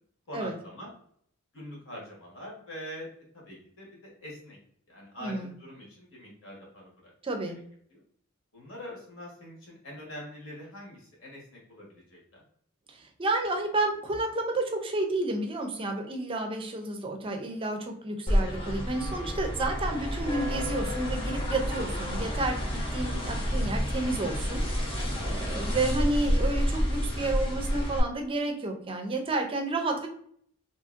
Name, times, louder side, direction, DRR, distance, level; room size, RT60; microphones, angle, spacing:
voice 1, 0.3-0.9 1.5-4.6 4.9-7.1 7.9-8.0 8.5-12.4 25.2-25.6, left 1 dB, 65° left, -3 dB, 1.3 m, -44 dB
voice 2, 5.2-5.5 7.2-7.6 12.9-30.1, right 2 dB, 25° right, 4 dB, 0.5 m, -31 dB
sound 1, 18.3-28.0, equal, 25° left, 0.6 m, -29 dB
2.7 x 2.6 x 2.4 m, 0.63 s
head